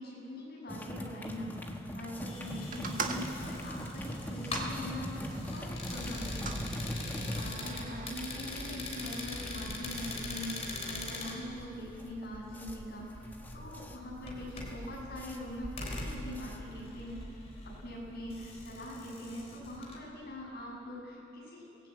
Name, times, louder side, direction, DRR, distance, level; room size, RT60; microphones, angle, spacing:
voice 1, 0.0-21.9, left 1 dB, 45° left, -3 dB, 7.2 m, -43 dB
sound 1, 0.7-17.0, equal, 10° left, 1.5 m, -42 dB
sound 2, 2.3-20.0, left 2 dB, 30° left, 3.6 m, -42 dB
sound 3, 2.7-5.5 6.1-6.7 7.4-8.1, right 4 dB, 40° right, 1.6 m, -41 dB
22.5 x 18.5 x 8.8 m, 2.9 s
head